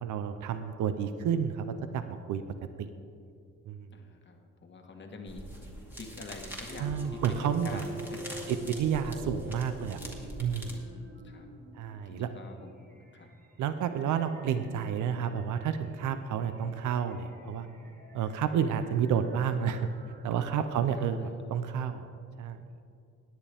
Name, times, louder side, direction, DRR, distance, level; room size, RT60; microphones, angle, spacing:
voice 1, 0.0-2.4 2.8-2.9 3.7-3.9 6.8-7.8 8.5-10.0 10.4-10.8 11.7-12.3 13.6-17.7 18.1-19.9 20.2-22.1 22.4-22.6, right 8 dB, 80° right, 10 dB, 0.7 m, -30 dB
voice 2, 3.9-5.4 5.9-8.8 10.6-11.5 12.0-12.7 13.1-13.3 20.4-21.1, left 3 dB, 40° left, 3 dB, 1.6 m, -47 dB
sound 1, 5.3-10.8, right 1 dB, 5° right, 2.2 m, -44 dB
sound 2, 6.7-21.2, equal, 30° right, 2.1 m, -48 dB
17.0 x 10.0 x 3.5 m, 2.5 s
cardioid pair, 90°, 30 cm